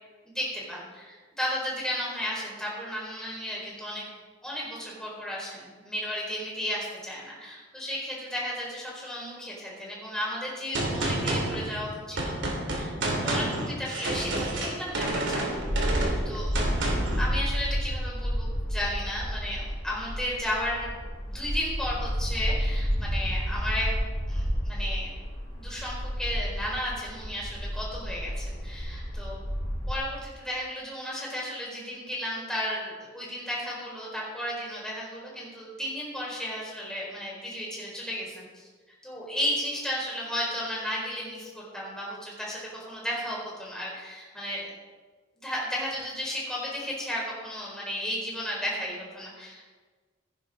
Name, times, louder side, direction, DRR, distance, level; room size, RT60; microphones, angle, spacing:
voice 1, 0.2-4.1 4.4-12.4 12.8-16.6 17.2-21.0 21.3-23.9 24.3-25.2 25.6-29.4 29.9-38.7 39.0-44.7 45.4-49.7, left 1 dB, 5° left, -6 dB, 4.6 m, -34 dB
Gunshot gunfire, 10.7-17.2, right 1 dB, 80° right, 2.9 m, -29 dB
sound 1, 14.9-29.9, equal, 80° left, 2.9 m, -31 dB
17.0 x 9.8 x 3.8 m, 1.4 s
head